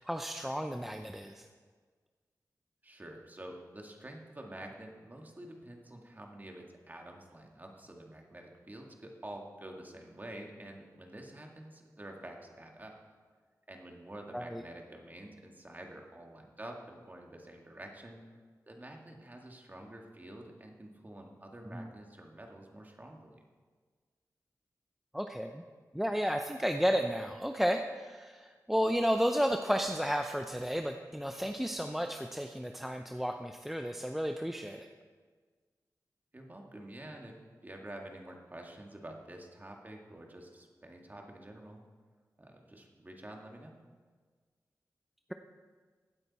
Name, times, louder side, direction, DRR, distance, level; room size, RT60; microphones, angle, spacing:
voice 1, 0.0-1.4 14.3-14.6 21.7-21.9 25.1-25.6 25.9-34.9, equal, 5° right, 5 dB, 0.6 m, -32 dB
voice 2, 2.8-13.0 13.7-18.2 18.7-23.4 36.3-37.3 37.6-41.8 42.4-43.7, right 1 dB, 25° right, 1 dB, 2.0 m, -48 dB
16.0 x 9.0 x 4.2 m, 1.5 s
cardioid pair, 60°, 7 cm